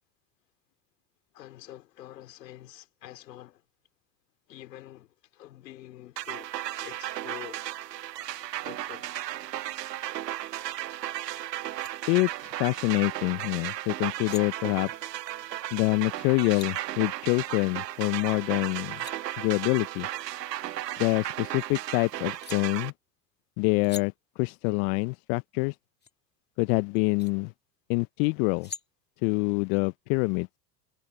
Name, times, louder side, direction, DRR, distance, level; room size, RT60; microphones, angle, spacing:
voice 1, 1.3-3.6 4.5-6.5 6.8-7.7 8.3-9.1, left 14 dB, 85° left, 3.9 m, -47 dB
sound 1, 6.2-22.9, right 13 dB, 90° right, 1.1 m, -35 dB
sound 2, 11.6-11.9 14.0-14.4 16.1-16.7 18.6-19.2 20.6-21.7 22.4-22.6 23.8-24.1 26.0-26.1 27.0-27.3 28.2-28.9, left 5 dB, 20° left, 2.2 m, -45 dB
voice 2, 12.1-14.9 15.7-19.0 19.4-20.1 21.0-22.9 23.6-25.7 26.6-27.5 27.9-28.7 29.2-30.5, left 29 dB, 60° left, 0.7 m, -26 dB
hypercardioid pair, 95°, 48 cm